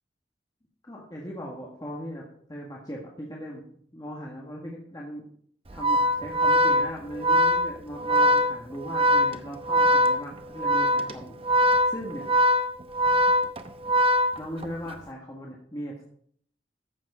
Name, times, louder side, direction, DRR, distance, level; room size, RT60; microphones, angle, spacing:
voice 1, 0.8-2.2 2.5-5.2 5.7-12.2 14.4-16.0, equal, 20° left, -3 dB, 1.6 m, -38 dB
Organ, 5.7-14.9, equal, 30° right, 0.8 m, -22 dB
14.0 x 7.5 x 5.0 m, 0.63 s
head